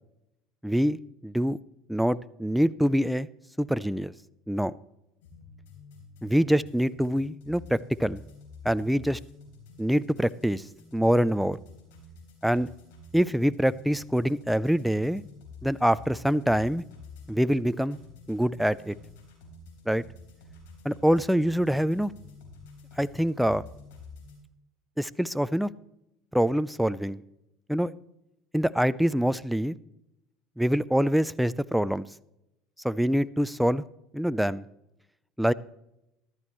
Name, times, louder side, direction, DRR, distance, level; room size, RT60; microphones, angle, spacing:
voice 1, 0.6-1.6 1.9-3.3 3.6-4.1 4.5-4.7 6.2-8.2 8.6-9.2 9.8-10.6 10.9-11.6 12.4-12.7 13.1-15.2 15.6-16.8 17.3-18.0 18.3-19.0 19.9-20.0 20.8-22.1 23.0-23.6 25.0-25.7 26.3-27.2 27.7-27.9 28.5-29.8 30.6-32.1 32.8-33.8 34.1-34.6 35.4-35.5, equal, ahead, 17 dB, 0.4 m, -25 dB
sound 1, 5.2-24.4, left 4 dB, 85° left, 3.6 m, -49 dB
14.0 x 12.0 x 3.1 m, 0.84 s
supercardioid pair, 105°, 0 cm